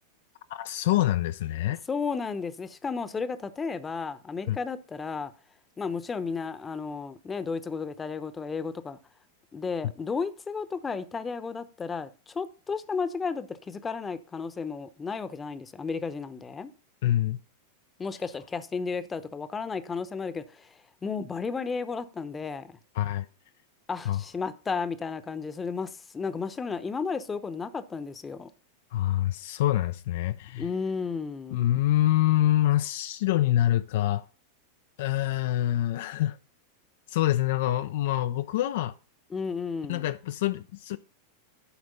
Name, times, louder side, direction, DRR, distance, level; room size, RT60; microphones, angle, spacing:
voice 1, 0.5-1.8 4.5-4.6 17.0-17.4 23.0-23.3 24.1-24.2 28.9-30.7 31.5-34.2 35.0-36.4 37.1-38.9 39.9-41.0, left 13 dB, 55° left, 0.4 m, -25 dB
voice 2, 1.9-5.3 5.8-9.0 9.5-16.7 18.0-22.8 23.9-28.5 30.6-31.7 39.3-40.1, left 5 dB, 15° left, 0.8 m, -33 dB
11.5 x 5.1 x 5.3 m
figure-of-eight pair, 90°, 0 cm